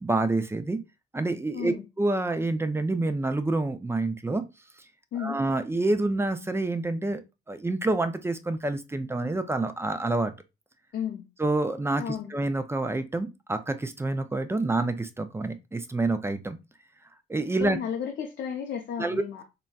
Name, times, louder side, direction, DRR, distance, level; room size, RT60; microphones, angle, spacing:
voice 1, 0.0-0.8 1.1-4.4 5.2-7.2 7.5-10.3 11.4-16.6 17.3-17.8 19.0-19.2, right 2 dB, 15° right, 0.4 m, -27 dB
voice 2, 1.5-1.8 5.1-5.4 10.9-11.3 12.0-12.3 17.6-19.4, left 8 dB, 65° left, 0.6 m, -33 dB
3.9 x 2.2 x 2.3 m
cardioid pair, 90°, 20 cm